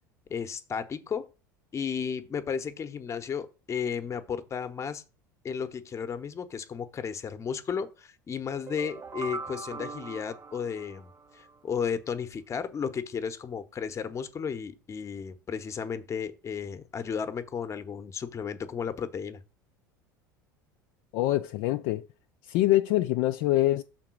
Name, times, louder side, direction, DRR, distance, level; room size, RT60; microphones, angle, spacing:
voice 1, 0.3-1.3 1.7-5.0 5.4-19.4, left 6 dB, 30° left, 0.9 m, -34 dB
sound 1, 8.5-11.6, right 4 dB, 25° right, 0.5 m, -41 dB
voice 2, 21.1-22.1 22.5-23.8, left 15 dB, 55° left, 0.4 m, -24 dB
6.0 x 3.7 x 6.1 m
figure-of-eight pair, 75°, 10 cm